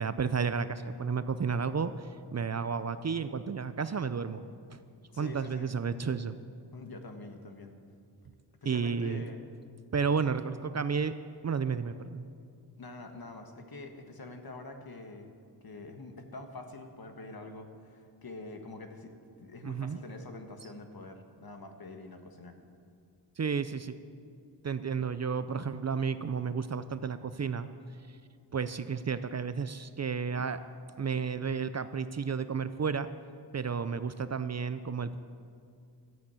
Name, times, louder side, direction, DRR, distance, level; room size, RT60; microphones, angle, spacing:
voice 1, 0.0-4.4 4.7-4.8 5.2-6.4 8.6-9.2 9.9-11.1 11.4-12.3 19.6-20.0 23.4-24.0 24.6-27.7 28.1-28.2 28.5-30.6 31.0-33.1 33.5-35.2, right 6 dB, 40° right, 12 dB, 0.5 m, -32 dB
voice 2, 5.1-5.7 6.7-7.8 8.6-9.4 12.8-15.3 15.6-22.6, left 2 dB, 60° left, 5 dB, 1.6 m, -45 dB
13.0 x 8.6 x 8.4 m, 2.3 s
wide cardioid pair, 70°, 42 cm